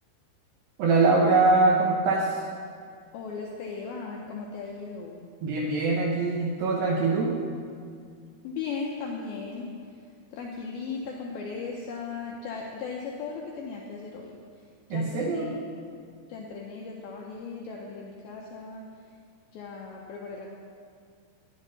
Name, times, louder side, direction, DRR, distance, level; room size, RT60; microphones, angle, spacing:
voice 1, 0.8-2.4 5.4-7.3 14.9-15.5, right 3 dB, 75° right, -3 dB, 2.2 m, -23 dB
voice 2, 3.1-5.3 8.4-9.7 10.3-14.3 14.9-15.6 16.3-18.8 19.5-20.5, left 4 dB, 90° left, -1 dB, 2.1 m, -37 dB
11.5 x 10.5 x 4.0 m, 2.2 s
omnidirectional pair, 5.3 m